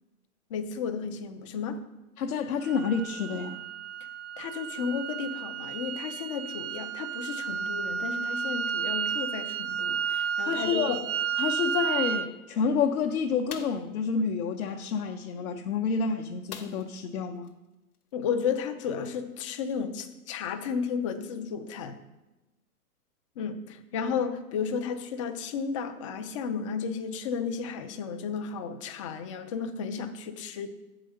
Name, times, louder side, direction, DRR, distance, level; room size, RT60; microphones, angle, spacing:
voice 1, 0.5-1.8 4.4-11.0 18.1-22.0 23.4-30.7, left 6 dB, 25° left, 8 dB, 0.4 m, -33 dB
voice 2, 2.2-3.6 10.5-11.0 11.4-17.5, left 5 dB, 65° left, 1 dB, 0.8 m, -29 dB
sound 1, 2.6-12.3, right 7 dB, 55° right, 0.8 m, -32 dB
sound 2, 13.5-13.9 16.5-17.1 17.4-17.5 17.9-18.1, left 7 dB, 80° left, 1.1 m, -43 dB
7.6 x 5.0 x 6.5 m, 1.0 s
hypercardioid pair, 125°, 45 cm